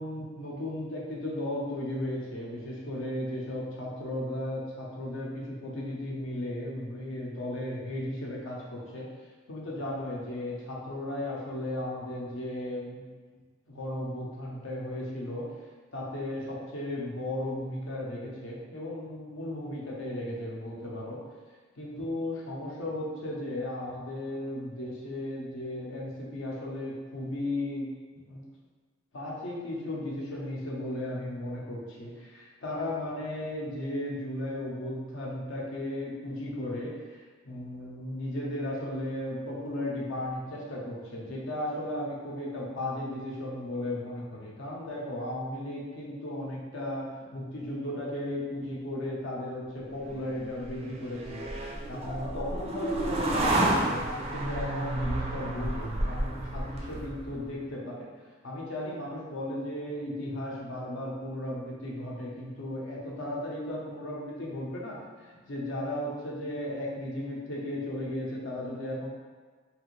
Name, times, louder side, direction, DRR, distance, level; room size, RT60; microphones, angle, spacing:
voice 1, 0.0-9.1 9.5-13.1 13.7-15.5 15.9-21.2 21.8-27.9 28.3-28.5 29.1-51.5 51.9-58.1 58.4-65.0 65.2-69.1, left 1 dB, 70° left, -4 dB, 0.7 m, -35 dB
sound 1, 50.1-57.5, right 1 dB, 30° right, 0.4 m, -31 dB
3.1 x 2.5 x 3.1 m, 1.4 s
head